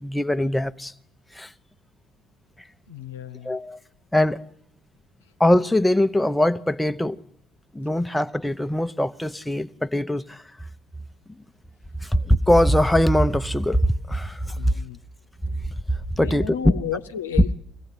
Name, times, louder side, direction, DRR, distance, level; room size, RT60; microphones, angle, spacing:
voice 1, 0.0-0.9 1.3-1.5 3.4-3.8 4.1-4.4 5.4-7.2 7.7-10.4 12.0-14.7 16.1-16.5, left 1 dB, 5° left, 0.9 m, -22 dB
voice 2, 2.9-3.6 14.5-15.0 16.2-17.5, left 9 dB, 90° left, 0.8 m, -32 dB
24.5 x 16.0 x 9.7 m
hypercardioid pair, 60°, 0 cm